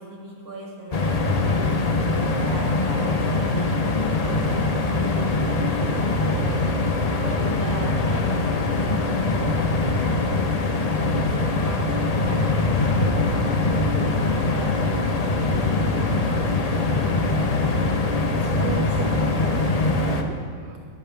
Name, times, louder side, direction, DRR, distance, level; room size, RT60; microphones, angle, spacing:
voice 1, 0.0-1.5 2.4-6.7 7.2-10.5 11.2-13.3 13.7-17.9, right 1 dB, 60° right, -2 dB, 2.5 m, -39 dB
sound 1, 0.9-20.2, left 2 dB, 40° left, 0.6 m, -22 dB
voice 2, 18.2-20.8, right 8 dB, 75° right, 8 dB, 1.1 m, -36 dB
11.0 x 8.7 x 5.8 m, 2.4 s
omnidirectional pair, 1.8 m